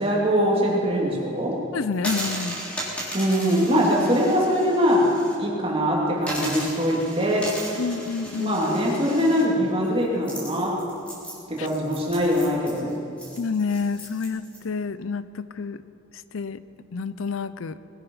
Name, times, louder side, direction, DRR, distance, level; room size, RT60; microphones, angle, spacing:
voice 1, 0.0-1.6 3.1-5.1 5.4-7.5 8.4-10.8 11.5-12.9, equal, 30° right, -3 dB, 2.8 m, -22 dB
voice 2, 1.7-2.6 7.8-8.6 11.6-11.7 13.4-15.8 16.3-16.6 16.9-17.8, left 5 dB, 80° left, 15 dB, 0.5 m, -28 dB
sound 1, 1.9-5.3 5.7-5.8 6.2-14.6, right 1 dB, 5° left, 3.3 m, -36 dB
20.5 x 9.8 x 5.5 m, 2.6 s
head